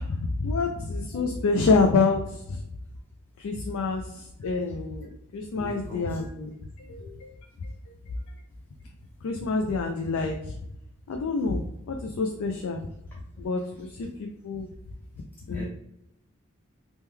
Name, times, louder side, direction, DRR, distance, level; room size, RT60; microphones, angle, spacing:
voice 1, 0.0-2.6 3.4-6.5 6.8-7.3 7.6-7.7 9.2-10.6 11.1-11.6 11.9-12.8 13.4-14.7 15.5-15.6, left 3 dB, 85° left, 3 dB, 0.4 m, -27 dB
voice 2, 5.5-6.3 15.4-15.6, equal, 10° left, -5 dB, 0.5 m, -41 dB
3.0 x 2.2 x 3.4 m, 0.81 s
head